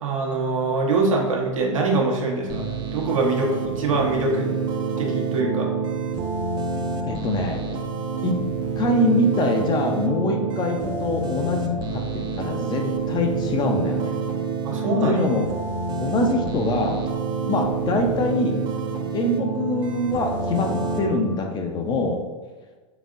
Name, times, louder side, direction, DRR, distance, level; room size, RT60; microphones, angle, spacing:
voice 1, 0.0-2.7 2.9-4.5 5.0-5.7 14.6-15.2, right 3 dB, 80° right, -1 dB, 0.9 m, -23 dB
sound 1, 2.5-21.1, right 4 dB, 25° right, 0.4 m, -27 dB
voice 2, 7.1-7.6 8.2-8.4 8.8-14.2 15.0-15.5 15.9-17.0 17.5-18.6 19.1-22.2, left 2 dB, 25° left, 3 dB, 0.5 m, -24 dB
3.9 x 3.5 x 2.5 m, 1.3 s
hypercardioid pair, 105°, 17 cm